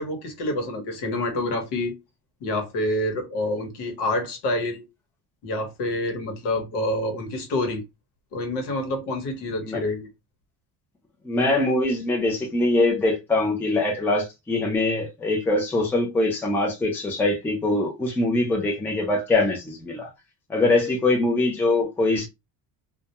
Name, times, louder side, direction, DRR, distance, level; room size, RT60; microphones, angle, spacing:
voice 1, 0.0-1.9 2.4-4.8 5.4-7.8 8.3-10.1, left 1 dB, 70° left, 1.0 m, -27 dB
voice 2, 11.2-20.1 20.5-22.3, left 2 dB, 5° left, 0.4 m, -23 dB
2.2 x 2.2 x 2.7 m
cardioid pair, 165°, 42 cm